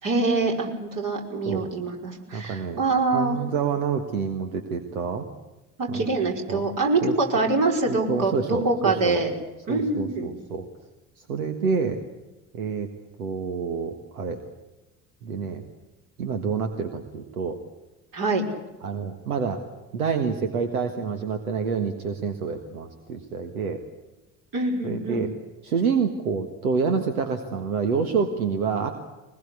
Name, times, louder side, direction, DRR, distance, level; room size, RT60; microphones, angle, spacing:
voice 1, 0.0-3.4 5.8-9.3 9.7-10.3 18.1-18.4 24.5-25.2, right 3 dB, 50° right, 1 dB, 5.4 m, -25 dB
voice 2, 2.3-2.8 3.1-5.3 5.9-6.1 6.5-6.6 7.0-7.4 7.9-9.2 9.7-10.7 11.3-12.0 12.5-12.9 13.2-14.4 15.2-15.7 16.2-17.6 18.8-19.6 19.9-23.8 24.8-25.3 25.6-28.9, right 5 dB, 80° right, 6 dB, 1.6 m, -27 dB
23.5 x 20.5 x 8.2 m, 1.1 s
figure-of-eight pair, 60°, 43 cm